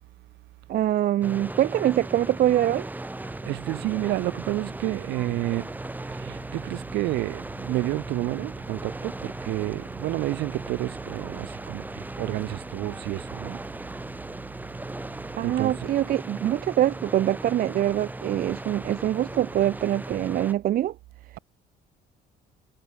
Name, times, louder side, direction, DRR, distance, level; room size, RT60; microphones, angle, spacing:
voice 1, 0.7-2.9 15.4-21.0, right 12 dB, 60° right, 0.8 m, -24 dB
sound 1, 1.2-20.5, right 2 dB, 10° right, 2.4 m, -37 dB
voice 2, 3.4-5.7 6.1-13.6 15.4-15.7, right 18 dB, 85° right, 1.8 m, -30 dB
cardioid pair, 110°, 17 cm